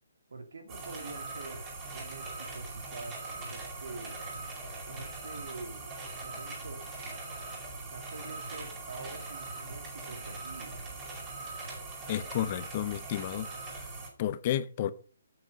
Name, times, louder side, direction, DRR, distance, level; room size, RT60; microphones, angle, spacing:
voice 1, 0.3-1.6 1.9-4.2 4.9-5.9 6.2-6.8 7.7-10.8, right 3 dB, 75° right, 2.5 m, -46 dB
sound 1, 0.7-14.1, right 3 dB, 25° right, 4.7 m, -41 dB
voice 2, 12.1-13.5 14.2-14.9, left 11 dB, 35° left, 0.7 m, -31 dB
8.1 x 7.5 x 5.3 m
hypercardioid pair, 155°, 0 cm